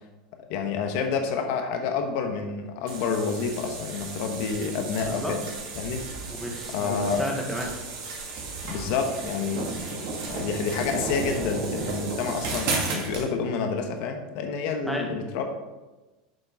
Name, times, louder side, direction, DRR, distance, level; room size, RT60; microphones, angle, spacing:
voice 1, 0.5-5.4 5.8-6.0 6.7-7.2 8.6-10.0 10.2-15.4, left 5 dB, 60° left, 5 dB, 1.1 m, -29 dB
sound 1, 2.9-13.3, right 3 dB, 60° right, 2.2 m, -33 dB
voice 2, 6.2-7.7 14.9-15.1, equal, 5° left, 0 dB, 1.3 m, -32 dB
7.5 x 5.3 x 3.6 m, 1.1 s
supercardioid pair, 120°, 4 cm